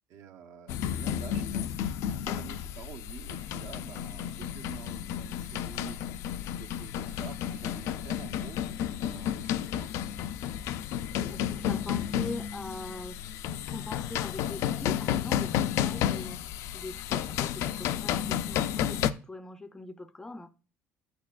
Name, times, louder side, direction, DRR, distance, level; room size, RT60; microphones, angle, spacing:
voice 1, 0.1-6.0 6.5-8.6 8.9-10.0, right 7 dB, 55° right, 1.0 m, -48 dB
sound 1, 0.7-19.1, left 10 dB, 65° left, 0.4 m, -32 dB
voice 2, 11.1-13.2 13.7-16.4 16.7-20.5, left 2 dB, 10° left, 0.5 m, -42 dB
8.7 x 8.5 x 2.4 m
cardioid pair, 155°, 5 cm